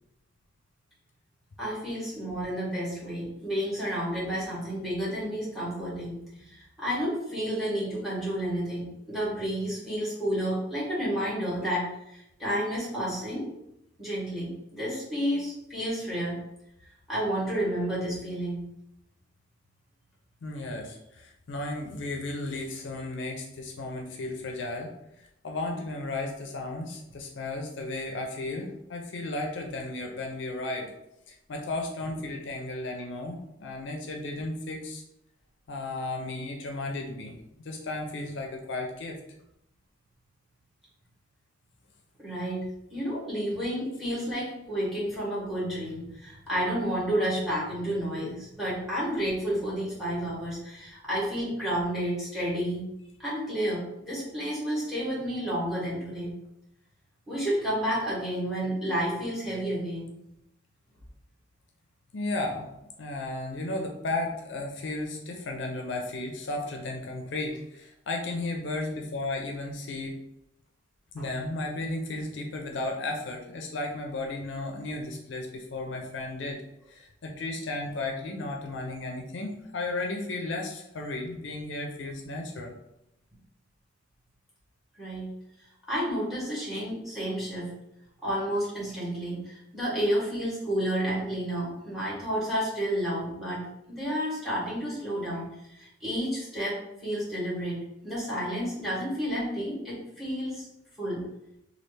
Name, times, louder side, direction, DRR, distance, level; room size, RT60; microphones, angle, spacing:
voice 1, 1.6-13.5 14.0-16.3 17.1-18.6 42.2-52.9 53.2-56.3 57.3-60.1 71.2-71.3 85.0-85.3 85.9-87.7 88.2-100.7 101.0-101.2, equal, ahead, -7 dB, 1.5 m, -31 dB
voice 2, 20.4-30.9 31.3-35.0 35.7-39.2 62.1-62.7 63.0-70.2 71.1-76.6 76.9-82.7, left 2 dB, 65° left, 2 dB, 0.5 m, -34 dB
3.1 x 2.4 x 3.2 m, 0.82 s
head